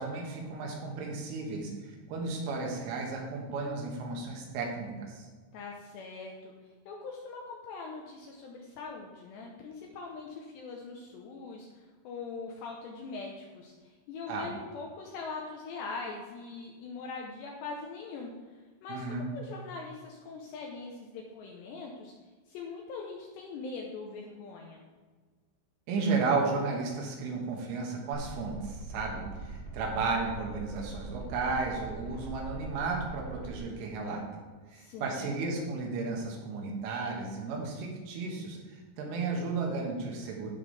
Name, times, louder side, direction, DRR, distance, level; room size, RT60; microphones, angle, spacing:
voice 1, 0.0-5.3 14.3-14.5 18.9-19.3 25.9-34.4 34.7-38.6 39.0-40.5, right 4 dB, 75° right, 0 dB, 3.9 m, -33 dB
voice 2, 5.5-6.5 6.9-22.1 22.5-24.8 34.7-35.3, left 4 dB, 75° left, 0 dB, 2.6 m, -42 dB
sound 1, 28.2-33.6, right 2 dB, 35° left, 2.1 m, -42 dB
15.5 x 6.0 x 3.4 m, 1.4 s
omnidirectional pair, 5.9 m